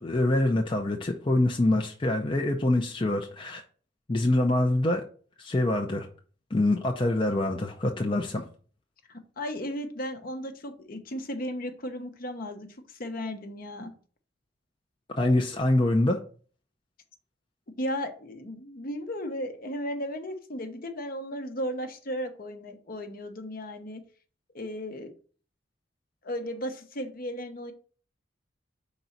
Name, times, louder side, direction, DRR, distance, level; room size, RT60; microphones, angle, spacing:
voice 1, 0.0-3.6 4.1-5.0 5.4-6.1 6.5-8.4 15.1-16.2, left 1 dB, 30° left, 2 dB, 0.6 m, -25 dB
voice 2, 9.1-13.9 17.8-24.0 24.5-25.1 26.2-27.7, equal, 50° left, 6 dB, 1.0 m, -35 dB
5.3 x 4.0 x 5.9 m, 0.42 s
head